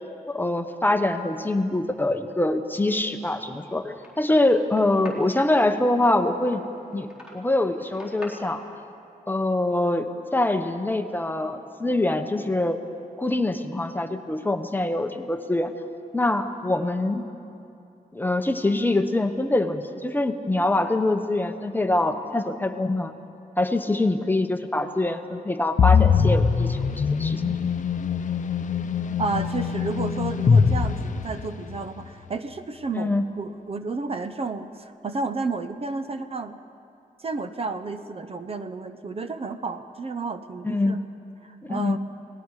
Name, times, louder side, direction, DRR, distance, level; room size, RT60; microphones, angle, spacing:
voice 1, 0.3-6.6 6.9-8.6 9.3-12.8 13.2-15.7 16.1-17.3 18.1-23.1 23.6-26.8 27.1-27.5 32.9-33.2 40.6-41.0 41.6-42.0, left 2 dB, 15° left, 7 dB, 0.9 m, -24 dB
sound 1, 3.4-8.3, left 1 dB, 5° right, 3.7 m, -48 dB
sound 2, 25.8-31.8, left 6 dB, 55° left, 0.7 m, -22 dB
voice 2, 29.2-36.6 37.2-41.0 41.4-42.0, right 4 dB, 40° right, 10 dB, 0.7 m, -31 dB
29.5 x 19.0 x 4.8 m, 2.7 s
wide cardioid pair, 140°, 15 cm